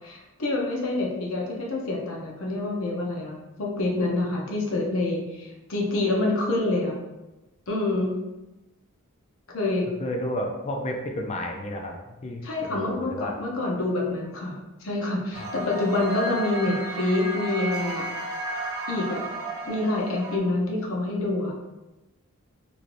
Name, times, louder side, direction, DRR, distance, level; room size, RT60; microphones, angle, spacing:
voice 1, 0.0-6.9 7.7-8.2 9.5-9.9 12.4-18.1 18.9-19.2 19.7-21.5, left 2 dB, 70° left, -2 dB, 0.7 m, -27 dB
voice 2, 10.0-12.0 12.2-12.4 12.7-13.3 15.3-15.5, left 1 dB, 30° left, 2 dB, 0.4 m, -31 dB
sound 1, 15.3-20.4, right 2 dB, 90° right, 0.6 m, -33 dB
3.1 x 2.6 x 2.6 m, 1.0 s
head